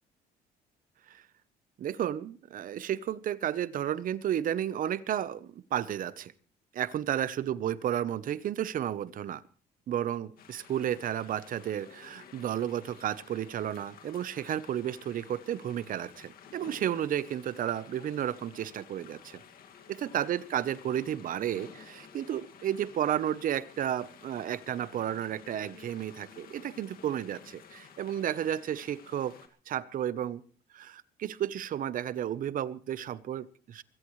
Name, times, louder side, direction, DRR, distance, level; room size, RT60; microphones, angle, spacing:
voice 1, 1.8-6.3 6.7-9.4 9.9-19.4 19.9-29.4 29.7-30.4 30.7-33.8, right 10 dB, 55° right, 17 dB, 0.9 m, -32 dB
sound 1, 10.4-29.5, left 7 dB, 60° left, 2.2 m, -53 dB
22.5 x 16.0 x 3.2 m, 0.39 s
cardioid pair, 110°, 17 cm